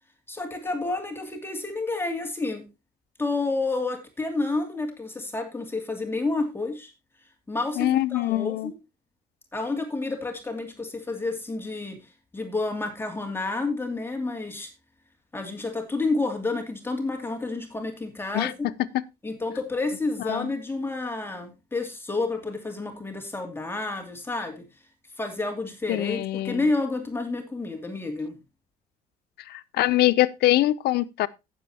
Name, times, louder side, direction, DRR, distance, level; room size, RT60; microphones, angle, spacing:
voice 1, 0.3-2.6 3.2-6.9 7.5-8.7 9.5-12.0 12.3-14.7 15.3-18.7 19.2-24.6 25.2-28.4, left 3 dB, 15° left, 2.7 m, -30 dB
voice 2, 7.8-8.7 18.3-19.0 20.3-20.5 25.9-26.6 29.5-31.3, left 15 dB, 75° left, 0.7 m, -24 dB
15.5 x 7.5 x 2.9 m
cardioid pair, 110°, 17 cm